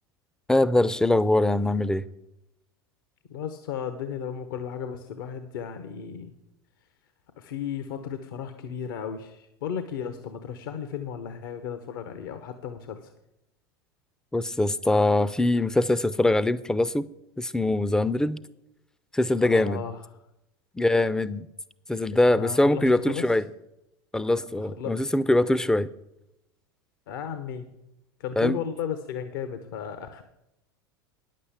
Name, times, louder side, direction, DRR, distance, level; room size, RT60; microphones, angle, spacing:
voice 1, 0.5-2.0 14.3-17.1 17.4-18.4 19.1-19.8 20.8-21.5 21.9-23.4 24.1-25.9 28.4-28.6, left 1 dB, 5° left, 17 dB, 0.5 m, -23 dB
voice 2, 3.3-6.3 7.4-13.1 19.4-20.0 22.1-23.3 24.6-25.0 27.1-27.7 28.2-30.2, left 8 dB, 65° left, 9 dB, 0.9 m, -35 dB
9.8 x 7.5 x 7.2 m, 0.87 s
figure-of-eight pair, 80°, 12 cm